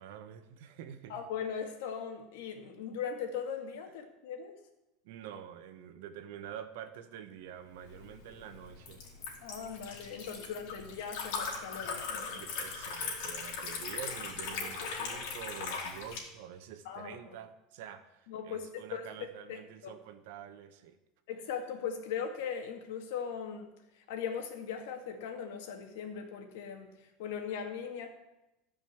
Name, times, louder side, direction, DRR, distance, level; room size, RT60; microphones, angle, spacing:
voice 1, 0.0-1.2 5.0-9.1 12.3-21.0, right 9 dB, 70° right, 10 dB, 1.1 m, -47 dB
voice 2, 1.1-4.5 9.4-12.5 16.9-17.2 18.3-19.2 19.5-19.9 21.3-28.1, left 7 dB, 75° left, 5 dB, 2.0 m, -39 dB
Liquid, 7.8-16.2, left 5 dB, 60° left, 2.9 m, -39 dB
14.0 x 5.2 x 7.8 m, 0.95 s
cardioid pair, 175°, 0 cm